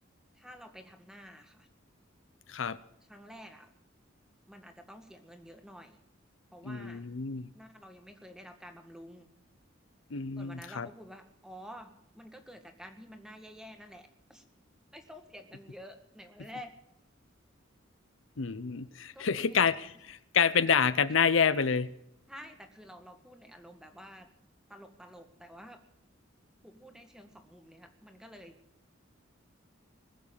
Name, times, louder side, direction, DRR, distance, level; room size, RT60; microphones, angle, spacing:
voice 1, 0.3-1.7 3.1-3.7 4.5-6.0 6.5-7.1 7.5-9.3 10.4-14.4 14.9-16.7 19.1-19.6 22.3-24.3 24.7-25.8 26.6-28.6, equal, 5° right, 6 dB, 1.8 m, -50 dB
voice 2, 6.6-7.5 10.1-10.9 18.4-21.9, left 6 dB, 70° left, 14 dB, 0.7 m, -28 dB
20.5 x 7.4 x 8.7 m, 0.78 s
head